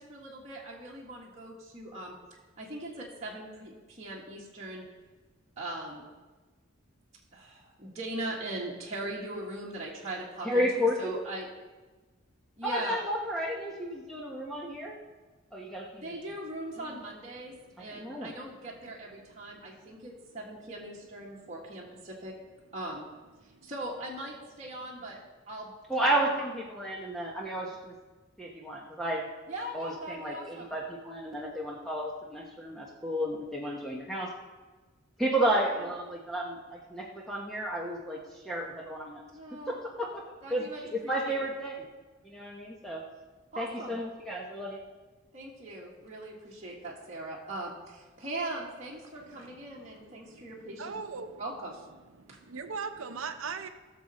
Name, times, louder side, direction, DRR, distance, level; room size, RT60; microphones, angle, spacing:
voice 1, 0.0-2.2 2.6-4.9 5.6-6.0 7.3-11.5 12.6-13.0 16.0-22.3 22.7-23.1 23.6-25.2 25.5-25.7 26.0-26.1 26.4-26.5 29.5-30.7 35.5-35.9 39.3-39.7 40.4-41.5 43.5-44.0 45.3-51.0 51.4-51.8 52.3-52.4, right 1 dB, 35° right, -6 dB, 1.8 m, -40 dB
voice 2, 10.4-11.2 12.6-15.0 15.5-16.3 16.8-16.9 17.8-18.3 25.9-27.9 28.4-29.3 29.7-34.3 35.2-39.2 39.7-40.2 40.5-41.9 42.2-43.0 43.6-44.8, right 1 dB, ahead, -3 dB, 1.0 m, -32 dB
voice 3, 23.4-23.7 49.2-51.4 52.2-53.7, right 5 dB, 85° right, 8 dB, 0.7 m, -41 dB
19.0 x 6.6 x 4.2 m, 1.3 s
head